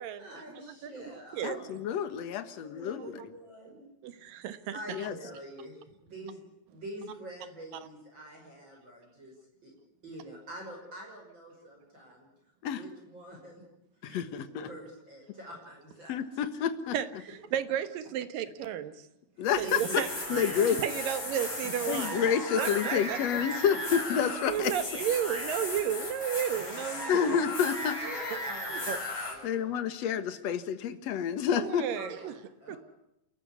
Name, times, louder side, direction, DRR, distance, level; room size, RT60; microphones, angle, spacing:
voice 1, 0.2-1.7 2.4-3.9 4.7-6.4 6.7-9.3 9.6-9.7 10.0-12.3 12.7-13.6 14.3-16.4 19.4-20.7 21.2-21.3 22.6-23.4 26.5-26.6 27.1-27.2 28.0-29.7 32.0-32.8, right 1 dB, 30° right, 0 dB, 6.3 m, -45 dB
voice 2, 1.4-3.0 4.9-5.1 12.6-12.8 14.0-14.7 16.1-16.9 19.4-19.8 20.3-20.8 21.9-24.7 27.1-28.0 29.4-31.9 32.7-32.8, left 8 dB, 55° left, 11 dB, 2.2 m, -29 dB
voice 3, 4.0-4.8 16.9-18.9 19.5-20.1 20.8-22.3 22.6-23.2 24.5-27.4 28.3-28.4 28.7-29.0 31.6-32.3 32.7-32.8, right 10 dB, 75° right, 12 dB, 2.9 m, -33 dB
sound 1, 19.5-29.3, left 1 dB, 35° left, 7.4 m, -36 dB
29.5 x 14.0 x 9.7 m, 0.84 s
omnidirectional pair, 4.1 m